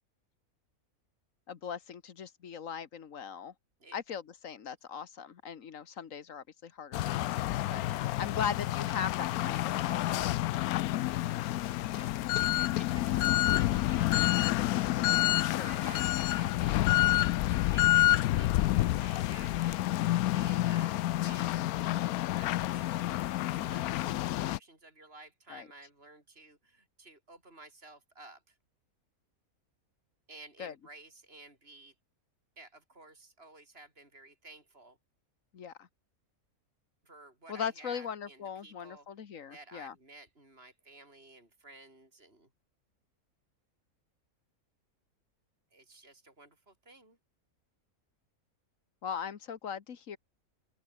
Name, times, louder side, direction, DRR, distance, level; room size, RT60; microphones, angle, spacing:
voice 1, 1.5-3.5 3.9-10.3 15.4-15.8 25.5-25.7 30.6-30.7 35.5-35.9 37.5-39.9 49.0-50.2, left 7 dB, 60° left, 1.6 m, -39 dB
sound 1, 6.9-24.6, left 15 dB, 80° left, 1.0 m, -29 dB
voice 2, 7.8-8.1 11.9-12.1 12.4-14.1 15.6-20.9 21.2-22.0 22.3-28.6 30.3-31.9 32.6-35.0 37.0-39.1 39.5-42.5 45.7-47.2, right 2 dB, 40° right, 6.7 m, -53 dB
open air
omnidirectional pair, 1.6 m